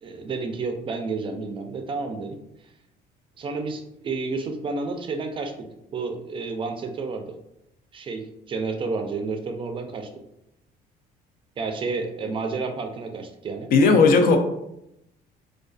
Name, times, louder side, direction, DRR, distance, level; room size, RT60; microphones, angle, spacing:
voice 1, 0.0-2.4 3.4-5.5 5.9-7.2 7.9-8.2 8.5-10.1 11.6-13.7, right 4 dB, 30° right, 5 dB, 0.4 m, -30 dB
voice 2, 13.7-14.4, left 4 dB, 60° left, 6 dB, 0.4 m, -15 dB
2.4 x 2.3 x 2.3 m, 0.82 s
cardioid pair, 110°, 17 cm